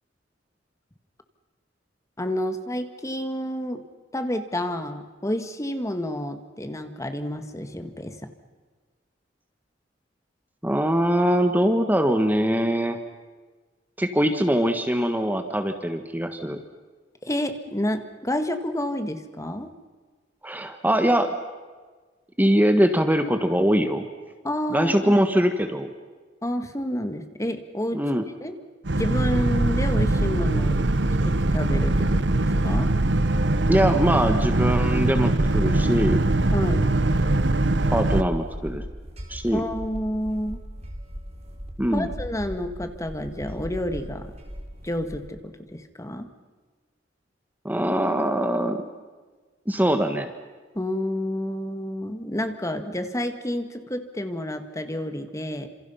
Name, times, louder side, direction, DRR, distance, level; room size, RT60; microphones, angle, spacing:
voice 1, 2.2-3.8 4.1-8.2 17.2-19.7 24.4-25.2 26.4-28.0 28.4-28.6 28.9-30.9 31.2-32.9 36.5-36.9 39.5-40.6 41.9-44.3 44.8-46.3 50.8-55.7, left 1 dB, 15° left, 8 dB, 1.8 m, -29 dB
voice 2, 10.6-13.0 14.0-16.6 20.4-21.3 22.4-24.0 24.7-25.9 27.9-28.2 33.7-36.2 37.9-38.8 39.3-39.6 41.8-42.1 47.6-48.8 49.7-50.3, equal, 10° right, 7 dB, 1.4 m, -22 dB
Boat Water vehicle, 28.9-38.2, right 2 dB, 70° right, 1.1 m, -22 dB
sound 1, 37.4-45.3, equal, 35° right, 3.8 m, -38 dB
28.5 x 27.0 x 5.7 m, 1.4 s
head